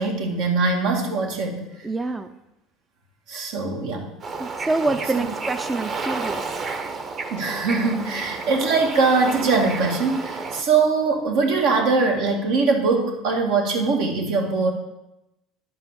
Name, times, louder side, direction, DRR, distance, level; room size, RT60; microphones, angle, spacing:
voice 1, 0.0-1.6 3.3-4.1 5.1-5.3 7.3-14.7, right 4 dB, 75° right, 2 dB, 2.4 m, -22 dB
voice 2, 1.8-2.3 4.4-6.8, right 2 dB, 15° right, 9 dB, 0.5 m, -27 dB
Bird / Ocean, 4.2-10.6, right 4 dB, 35° right, 1.3 m, -31 dB
10.5 x 5.5 x 7.0 m, 0.91 s
supercardioid pair, 110°, 0 cm